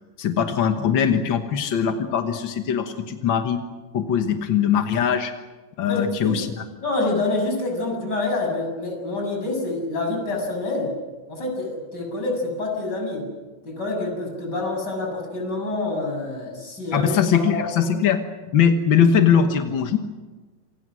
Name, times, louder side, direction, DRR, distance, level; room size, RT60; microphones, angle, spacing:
voice 1, 0.2-3.6 3.9-5.3 5.8-6.5 16.9-18.2 18.5-20.1, left 7 dB, 55° left, 6 dB, 1.3 m, -21 dB
voice 2, 5.9-6.5 6.8-10.9 11.3-13.3 13.6-17.1 17.5-18.0, left 2 dB, 30° left, 1 dB, 7.4 m, -27 dB
28.0 x 26.5 x 6.3 m, 1.3 s
omnidirectional pair, 3.9 m